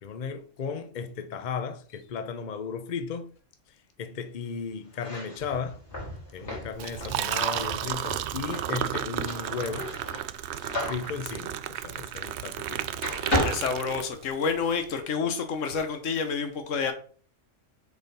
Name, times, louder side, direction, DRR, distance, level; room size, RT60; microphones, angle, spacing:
voice 1, 0.0-3.3 4.0-5.8 6.3-9.9 10.9-13.0, left 5 dB, 45° left, 0.8 m, -35 dB
sound 1, 4.9-12.7 13.0-14.6, left 1 dB, 60° left, 3.1 m, -34 dB
Liquid, 6.7-14.4, right 11 dB, 70° right, 0.8 m, -33 dB
voice 2, 13.4-16.9, left 5 dB, 80° left, 1.3 m, -29 dB
6.8 x 4.4 x 5.4 m
omnidirectional pair, 1.3 m